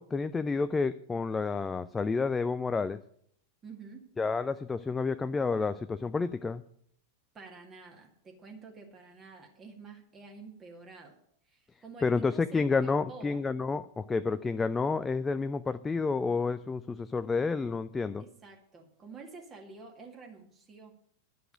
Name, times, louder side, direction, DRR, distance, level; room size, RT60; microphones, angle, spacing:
voice 1, 0.0-3.0 4.2-6.6 12.0-18.2, left 4 dB, 15° left, 12 dB, 0.4 m, -30 dB
voice 2, 3.6-4.0 7.3-11.2 11.5-13.4 18.2-20.9, right 4 dB, 20° right, 2 dB, 2.0 m, -49 dB
11.0 x 6.8 x 8.9 m, 0.66 s
figure-of-eight pair, 90°, 0 cm